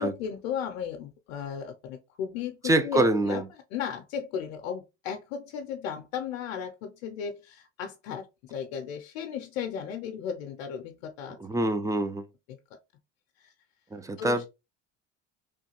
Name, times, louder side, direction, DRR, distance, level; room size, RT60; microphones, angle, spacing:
voice 1, 0.0-3.4 3.7-11.4 13.4-13.5 14.2-14.4, left 8 dB, 85° left, 0.6 m, -35 dB
voice 2, 2.6-3.4 11.4-12.2 13.9-14.5, right 1 dB, 10° right, 0.4 m, -25 dB
3.1 x 2.2 x 2.9 m
supercardioid pair, 80°, 36 cm